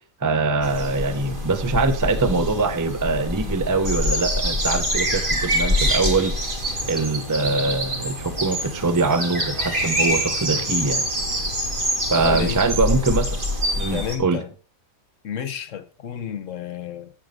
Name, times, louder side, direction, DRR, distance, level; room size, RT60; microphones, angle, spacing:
voice 1, 0.2-6.4 6.9-11.0 12.1-13.4 13.8-14.4, right 3 dB, 20° right, 0.6 m, -23 dB
sound 1, 0.6-14.2, equal, 35° right, 2.1 m, -25 dB
voice 2, 12.2-12.7 13.9-14.5 15.2-17.1, left 9 dB, 65° left, 1.2 m, -31 dB
8.7 x 6.5 x 5.2 m
omnidirectional pair, 1.5 m